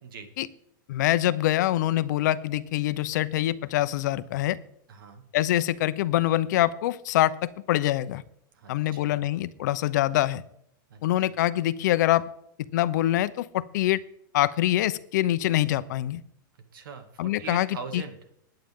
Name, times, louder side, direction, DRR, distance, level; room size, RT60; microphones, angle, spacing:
voice 1, 0.0-0.3 4.9-5.2 8.5-9.3 10.9-11.4 16.7-18.2, right 5 dB, 85° right, 6 dB, 2.3 m, -42 dB
voice 2, 0.9-4.6 5.3-8.2 8.7-10.4 11.0-12.2 12.7-14.0 14.3-16.2 17.2-17.7 17.9-18.0, left 14 dB, 60° left, 14 dB, 0.7 m, -24 dB
20.5 x 8.9 x 3.7 m, 0.73 s
supercardioid pair, 165°, 11 cm